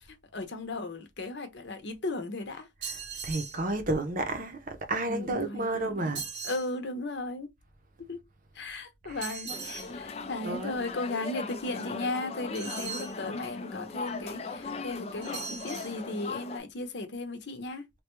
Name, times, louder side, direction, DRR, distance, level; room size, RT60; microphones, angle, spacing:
voice 1, 0.0-2.7 5.0-7.5 8.1-8.2 8.5-17.8, left 2 dB, 65° left, 0.8 m, -36 dB
sound 1, 2.8-3.6 6.1-6.7 9.2-9.9 12.5-13.2 15.2-15.9, right 6 dB, 70° right, 1.0 m, -39 dB
voice 2, 3.2-6.2 9.1-9.3 10.4-10.8, right 2 dB, 45° right, 0.7 m, -31 dB
sound 2, 9.5-16.6, left 3 dB, 35° left, 0.4 m, -39 dB
3.3 x 2.3 x 3.0 m
head